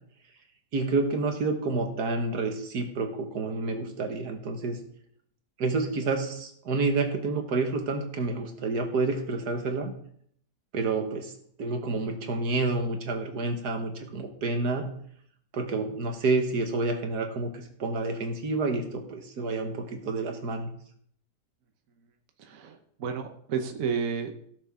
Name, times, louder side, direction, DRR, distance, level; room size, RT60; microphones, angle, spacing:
voice 1, 0.7-4.8 5.6-9.9 10.7-11.3 11.6-14.9 15.5-20.7, right 3 dB, 85° right, 5 dB, 1.9 m, -29 dB
voice 2, 22.4-24.3, right 6 dB, 60° right, 5 dB, 1.3 m, -31 dB
17.0 x 6.7 x 3.6 m, 0.66 s
omnidirectional pair, 1.7 m